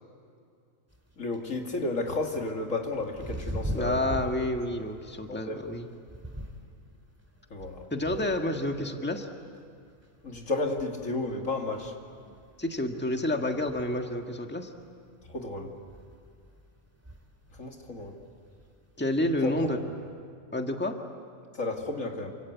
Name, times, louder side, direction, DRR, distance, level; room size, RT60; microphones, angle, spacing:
sound 1, 0.9-19.7, equal, 10° right, 2.5 m, -43 dB
voice 1, 1.2-4.2 5.3-5.6 7.5-7.9 10.2-11.9 15.3-15.7 17.5-18.2 19.4-19.9 21.5-22.3, left 2 dB, 85° left, 2 dB, 2.8 m, -32 dB
voice 2, 3.7-5.9 7.9-9.3 12.6-14.7 19.0-19.8 20.5-21.0, left 1 dB, 10° left, 4 dB, 1.6 m, -29 dB
27.5 x 26.0 x 8.2 m, 2.3 s
omnidirectional pair, 1.3 m